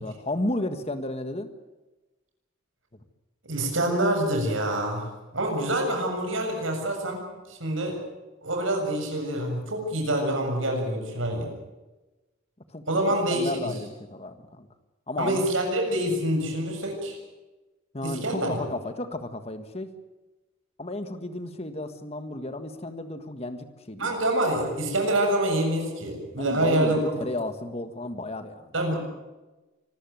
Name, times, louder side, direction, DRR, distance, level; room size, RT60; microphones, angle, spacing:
voice 1, 0.0-1.5 12.7-12.9 13.3-14.7 15.1-15.4 17.9-19.9 20.8-24.2 24.5-24.6 26.4-28.7, left 1 dB, 30° left, 9 dB, 1.6 m, -33 dB
voice 2, 3.4-5.1 5.3-7.2 7.5-8.0 8.4-11.5 12.9-13.5 15.2-17.2 18.0-18.6 24.0-27.0 28.7-29.0, right 1 dB, 75° right, 3 dB, 7.2 m, -26 dB
25.5 x 14.5 x 9.4 m, 1.1 s
head